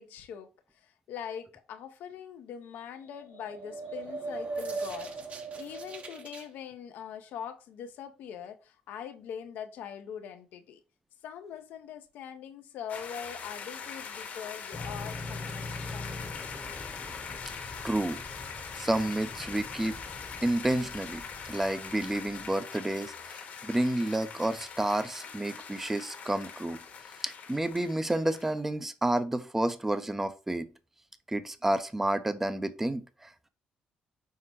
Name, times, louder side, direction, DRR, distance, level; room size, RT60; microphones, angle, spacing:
voice 1, 0.0-10.8 11.2-16.5, left 8 dB, 75° left, 0.7 m, -43 dB
sound 1, 3.1-6.5, right 3 dB, 45° right, 0.8 m, -38 dB
sound 2, 12.9-28.5, left 6 dB, 60° left, 1.1 m, -42 dB
sound 3, 14.7-22.5, left 2 dB, 10° left, 0.8 m, -44 dB
voice 2, 17.8-18.2 18.7-20.0 20.4-26.8 27.2-30.7 31.3-33.3, right 1 dB, 10° right, 0.5 m, -30 dB
5.7 x 2.1 x 4.2 m
cardioid pair, 85°, 3 cm